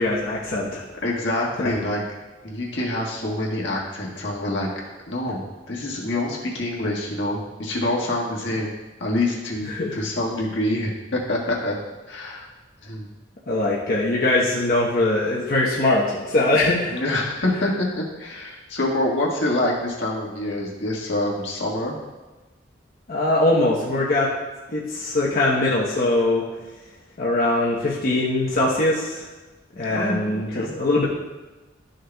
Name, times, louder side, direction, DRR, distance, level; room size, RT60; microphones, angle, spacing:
voice 1, 0.0-0.8 9.7-9.9 13.5-17.0 23.1-24.3 24.7-26.4 27.2-29.3 29.8-30.5 30.8-31.1, left 2 dB, 50° left, -5 dB, 1.0 m, -21 dB
voice 2, 1.0-2.0 2.4-4.7 5.1-8.7 9.0-11.8 12.1-12.5 12.8-13.1 16.8-21.9 29.9-30.7, left 1 dB, 65° left, -2 dB, 1.6 m, -26 dB
12.5 x 6.5 x 2.3 m, 1.2 s
head